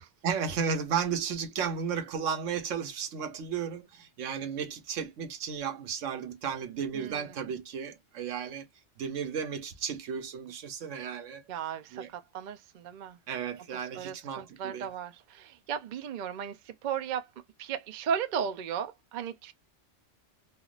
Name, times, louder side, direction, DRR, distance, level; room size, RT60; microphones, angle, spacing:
voice 1, 0.2-8.7 9.0-11.4 11.9-12.1 13.3-14.9, right 7 dB, 80° right, 1.1 m, -34 dB
voice 2, 6.9-7.3 11.5-13.2 14.0-17.3 17.6-19.5, right 8 dB, 60° right, 0.4 m, -35 dB
3.4 x 2.3 x 2.4 m
omnidirectional pair, 1.3 m